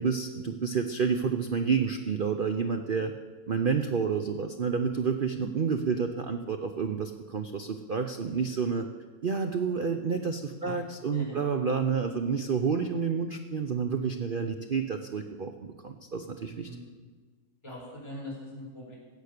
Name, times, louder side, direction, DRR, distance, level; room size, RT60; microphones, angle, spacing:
voice 1, 0.0-3.1 3.5-8.9 9.2-16.7, right 6 dB, 80° right, 6 dB, 0.4 m, -29 dB
voice 2, 17.6-18.9, equal, 15° left, -6 dB, 4.5 m, -42 dB
15.0 x 8.2 x 6.6 m, 1.4 s
omnidirectional pair, 1.9 m